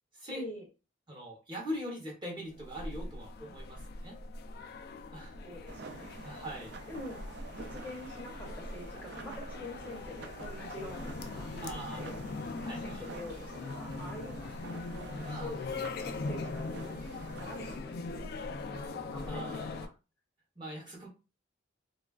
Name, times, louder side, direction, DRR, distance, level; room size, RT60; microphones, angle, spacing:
voice 1, 0.3-0.7 5.4-6.3 6.9-7.2 7.5-12.2 12.8-14.6 14.9-17.0 17.3-19.9, left 1 dB, 10° left, -3 dB, 0.7 m, -46 dB
voice 2, 1.1-4.1 5.1-5.3 6.2-6.7 11.6-12.0 12.6-13.0 15.2-15.5 19.3-19.8 20.6-21.1, equal, 25° right, -2 dB, 0.9 m, -42 dB
sound 1, 2.5-19.9, left 3 dB, 50° left, 0.3 m, -41 dB
sound 2, 5.7-17.8, right 3 dB, 55° right, 0.4 m, -48 dB
3.1 x 2.3 x 2.3 m, 0.31 s
head